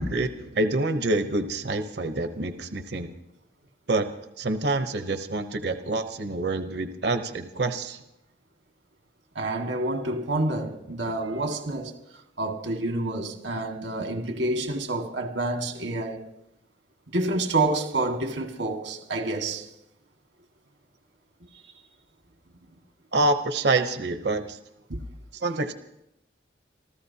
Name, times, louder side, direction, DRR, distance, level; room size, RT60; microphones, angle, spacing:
voice 1, 0.0-3.1 3.9-4.1 4.4-8.0 23.1-24.6 25.3-25.7, right 2 dB, 65° right, 0.8 m, -27 dB
voice 2, 9.4-11.9 12.4-16.2 17.1-19.7 24.9-25.0, right 2 dB, 85° right, 1.8 m, -28 dB
26.5 x 14.5 x 2.8 m
head